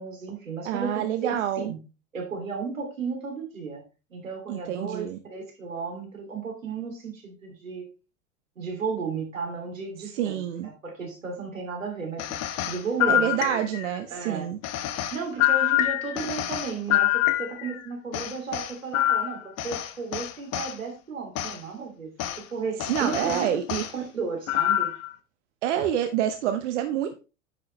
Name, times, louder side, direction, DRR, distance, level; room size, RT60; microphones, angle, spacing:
voice 1, 0.0-1.8 2.1-3.8 4.1-7.9 8.6-12.2 12.7-13.7 14.1-14.5 15.1-17.1 17.4-22.1 22.5-23.6 23.9-24.9, right 5 dB, 85° right, 2 dB, 2.9 m, -34 dB
voice 2, 0.6-1.7 4.5-5.2 10.1-10.7 13.1-14.6 22.9-23.9 25.6-27.2, right 10 dB, 65° right, 7 dB, 0.9 m, -27 dB
sound 1, 12.2-14.0 14.6-17.8 18.1-20.7 21.3-21.6 22.2-22.4 22.8-23.9 24.5-25.1, left 13 dB, 40° left, 1.0 m, -26 dB
9.6 x 6.0 x 3.2 m, 0.31 s
hypercardioid pair, 90°, 39 cm